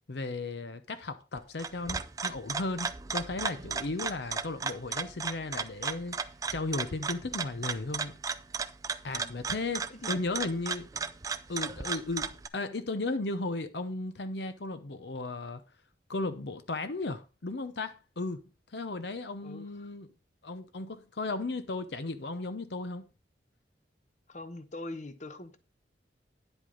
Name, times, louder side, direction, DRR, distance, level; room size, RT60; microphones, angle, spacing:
voice 1, 0.1-6.2 6.5-8.2 9.0-10.9 11.5-15.6 16.1-18.4 18.7-20.1 20.4-23.0, left 3 dB, 65° left, 0.7 m, -35 dB
sound 1, 1.4-12.5, right 5 dB, 20° right, 0.4 m, -35 dB
voice 2, 3.8-4.2 9.1-9.4 9.9-10.3 19.4-19.9 24.3-25.6, left 2 dB, 40° left, 0.9 m, -44 dB
10.0 x 8.1 x 3.8 m
head